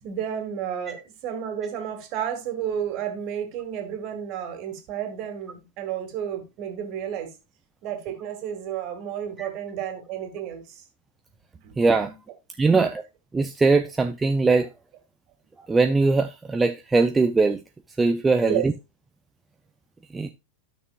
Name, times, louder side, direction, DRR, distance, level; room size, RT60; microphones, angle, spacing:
voice 1, 0.0-7.3 7.8-10.8 11.6-12.2 12.7-13.0 18.4-18.7, right 9 dB, 40° right, 2.1 m, -31 dB
voice 2, 11.8-12.1 12.6-12.9 13.3-14.7 15.7-17.6 18.0-18.7 20.1-20.3, right 3 dB, 10° right, 0.6 m, -21 dB
12.5 x 6.2 x 2.5 m
figure-of-eight pair, 90°, 0 cm